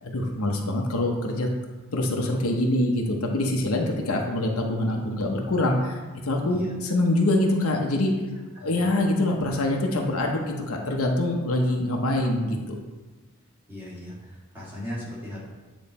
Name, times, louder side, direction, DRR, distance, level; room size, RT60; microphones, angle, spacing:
voice 1, 0.0-1.5 1.9-8.1 8.6-12.8, left 1 dB, 80° left, 1 dB, 0.8 m, -25 dB
voice 2, 8.5-9.1 13.7-15.4, equal, 10° right, -9 dB, 1.9 m, -38 dB
8.7 x 3.1 x 4.2 m, 1.2 s
head